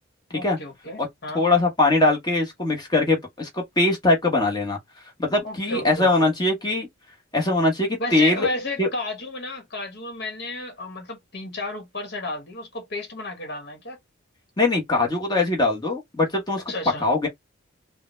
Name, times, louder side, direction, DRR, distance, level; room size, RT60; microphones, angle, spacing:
voice 1, 0.3-1.4 5.4-6.3 8.0-14.0 16.7-17.1, left 2 dB, 55° left, 1.4 m, -33 dB
voice 2, 1.3-4.8 5.2-6.9 7.3-8.5 8.8-8.9 14.6-16.6 17.0-17.3, left 2 dB, 20° left, 1.1 m, -21 dB
3.6 x 2.2 x 3.1 m
head